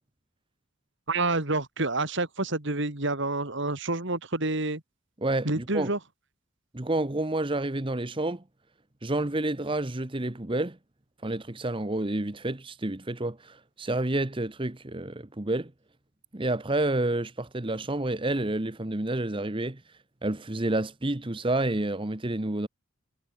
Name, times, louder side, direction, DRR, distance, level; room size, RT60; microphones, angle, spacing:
voice 1, 1.1-4.8 5.5-6.0, right 2 dB, 60° right, 2.5 m, -28 dB
voice 2, 5.2-5.9 6.7-8.4 9.0-10.8 11.2-15.7 16.3-19.8 20.2-22.7, right 2 dB, 25° right, 1.0 m, -29 dB
head